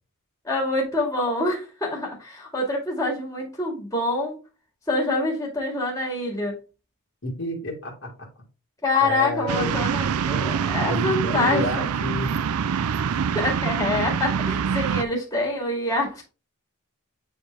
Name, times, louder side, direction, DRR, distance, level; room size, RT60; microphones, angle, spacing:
voice 1, 0.4-4.4 4.9-6.6 8.8-11.6 13.1-16.2, left 2 dB, 15° left, 2.2 m, -26 dB
voice 2, 7.2-8.3 9.0-9.7 10.9-12.3, left 1 dB, 55° left, 2.0 m, -30 dB
sound 1, 9.5-15.0, right 7 dB, 90° right, 0.4 m, -25 dB
8.8 x 3.6 x 3.3 m
head